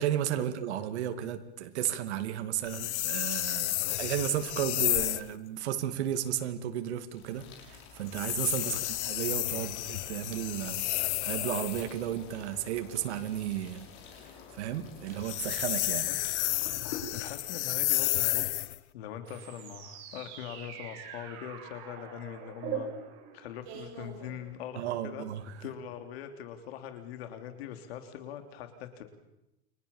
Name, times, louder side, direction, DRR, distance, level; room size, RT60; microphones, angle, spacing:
voice 1, 0.0-16.1 24.7-25.7, right 11 dB, 75° right, 7 dB, 2.5 m, -34 dB
sound 1, 2.7-5.3 8.1-11.9 15.1-18.8, left 16 dB, 85° left, 0.9 m, -31 dB
sound 2, 7.1-17.1, left 7 dB, 35° left, 6.2 m, -49 dB
voice 2, 8.6-8.9 16.1-16.2 17.1-22.9 23.3-25.3 25.6-29.0, left 9 dB, 65° left, 7 dB, 3.4 m, -42 dB
sound 3, 19.2-24.9, right 7 dB, 40° right, 6.1 m, -43 dB
29.5 x 24.5 x 7.3 m, 0.90 s
supercardioid pair, 165°, 33 cm